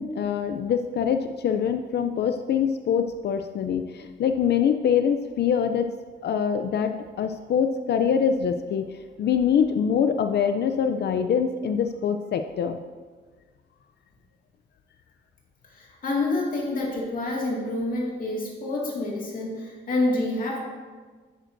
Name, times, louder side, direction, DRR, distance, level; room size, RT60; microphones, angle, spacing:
voice 1, 0.0-5.9 6.2-8.9 9.2-12.8, left 7 dB, 65° left, 8 dB, 0.5 m, -24 dB
voice 2, 15.7-20.6, left 2 dB, 45° left, -2 dB, 2.1 m, -27 dB
11.0 x 8.8 x 2.6 m, 1.4 s
wide cardioid pair, 150°, 19 cm